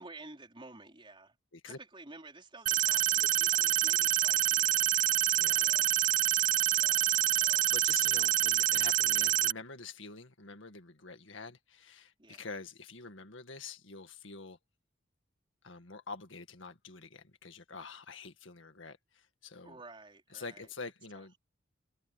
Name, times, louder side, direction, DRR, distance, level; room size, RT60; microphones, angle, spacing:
voice 1, 0.0-1.4 1.6-4.9 5.6-5.9 6.7-7.7 12.2-12.5 19.6-20.7 21.2-21.4, right 2 dB, 25° right, 4.1 m, -52 dB
sound 1, 2.7-9.5, right 13 dB, 40° right, 0.4 m, -27 dB
voice 2, 7.7-14.6 15.6-19.8 20.3-21.3, left 4 dB, 70° left, 1.9 m, -46 dB
head